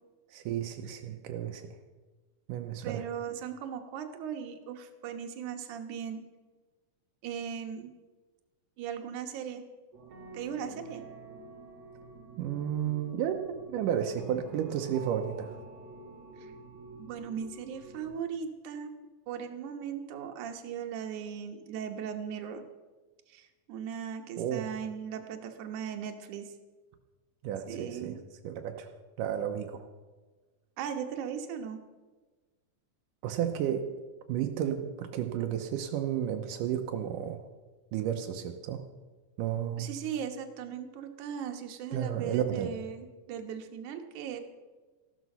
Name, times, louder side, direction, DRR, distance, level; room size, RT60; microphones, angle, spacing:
voice 1, 0.3-1.7 2.5-3.0 12.4-15.5 24.4-24.7 27.4-28.2 28.4-28.9 29.2-29.8 33.2-33.9 34.3-37.4 37.9-38.8 39.4-39.9 41.9-42.7, right 9 dB, 85° right, 4 dB, 2.4 m, -32 dB
voice 2, 2.8-6.2 7.2-7.9 8.8-9.6 10.3-11.0 16.4-16.5 17.0-18.9 19.3-22.6 23.3-26.6 27.7-28.2 30.8-31.8 39.8-44.4, right 8 dB, 70° right, 5 dB, 2.6 m, -38 dB
sound 1, 9.9-18.2, right 2 dB, 55° right, 2.7 m, -48 dB
15.0 x 12.5 x 5.5 m, 1.3 s
omnidirectional pair, 3.7 m